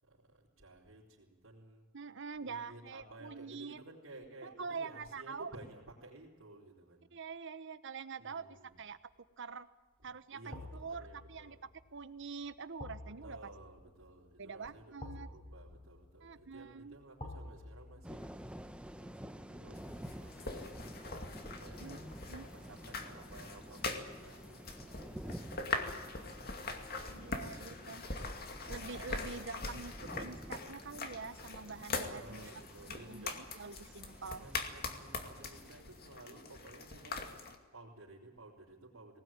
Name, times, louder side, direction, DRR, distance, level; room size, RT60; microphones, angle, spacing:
voice 1, 0.0-1.9 2.4-7.1 8.2-8.8 10.3-11.6 13.2-18.3 19.0-22.0 22.5-28.2 32.1-33.4 34.3-37.2 37.7-39.2, right 2 dB, 90° right, -7 dB, 4.2 m, -55 dB
voice 2, 1.9-3.8 4.4-5.5 7.1-8.4 8.8-9.0 9.4-9.7 10.0-13.5 14.4-15.3 16.2-17.0 21.8-22.0 22.3-22.5 27.1-28.0 28.7-32.5 32.9-34.5, right 5 dB, 65° right, 13 dB, 1.0 m, -45 dB
sound 1, 8.7-9.1 10.5-21.5 21.8-22.0, left 1 dB, 25° left, 4.1 m, -52 dB
sound 2, 18.0-35.8, equal, 5° right, 0.8 m, -51 dB
sound 3, 19.7-37.5, left 3 dB, 50° left, 2.3 m, -43 dB
20.0 x 18.5 x 9.0 m, 1.3 s
head